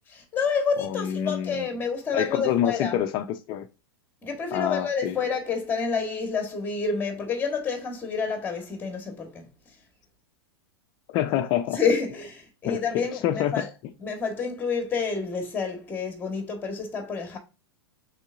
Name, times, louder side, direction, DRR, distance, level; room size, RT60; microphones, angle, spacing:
voice 1, 0.1-3.0 4.2-9.5 11.7-13.7 14.0-17.4, left 5 dB, 15° left, 1.4 m, -28 dB
voice 2, 0.8-1.7 2.1-3.7 4.5-5.1 11.1-11.8 12.6-13.6, left 10 dB, 35° left, 0.5 m, -27 dB
5.4 x 3.6 x 2.5 m
hypercardioid pair, 100°, 13 cm